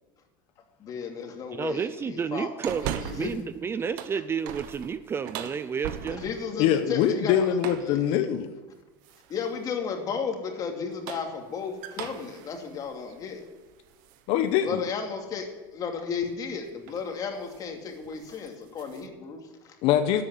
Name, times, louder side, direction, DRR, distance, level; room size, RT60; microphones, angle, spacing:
voice 1, 0.8-2.5 3.0-3.3 6.1-7.6 7.8-8.0 9.3-13.5 14.6-19.8, left 6 dB, 35° left, 3 dB, 2.6 m, -34 dB
voice 2, 1.5-6.2, right 6 dB, 20° right, 14 dB, 0.5 m, -31 dB
sound 1, 2.6-3.5 3.8-6.5 7.6-8.0 9.0-9.5 10.8-14.2 14.7-14.8 16.3-16.5 16.8-17.1 17.4-17.7 18.0-19.1, right 10 dB, 70° right, 1.1 m, -39 dB
voice 3, 6.6-8.5 14.3-14.8 19.8-20.2, left 10 dB, 60° left, 9 dB, 1.0 m, -23 dB
12.0 x 8.5 x 9.2 m, 1.2 s
supercardioid pair, 130°, 11 cm